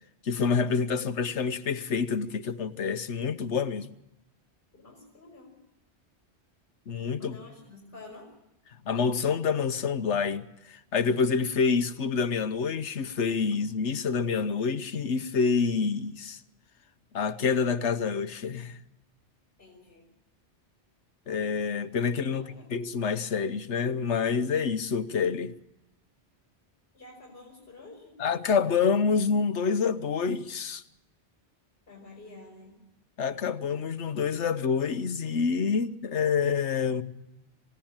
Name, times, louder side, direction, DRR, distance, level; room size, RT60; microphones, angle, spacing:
voice 1, 0.2-3.9 6.9-7.4 8.9-16.4 17.1-18.8 21.3-25.6 28.2-30.8 33.2-37.0, left 5 dB, 80° left, 1.3 m, -27 dB
voice 2, 4.7-5.6 7.2-8.3 19.6-20.0 22.3-22.7 26.9-28.2 31.9-32.7, left 2 dB, 50° left, 5.4 m, -49 dB
27.0 x 16.5 x 8.9 m
omnidirectional pair, 1.2 m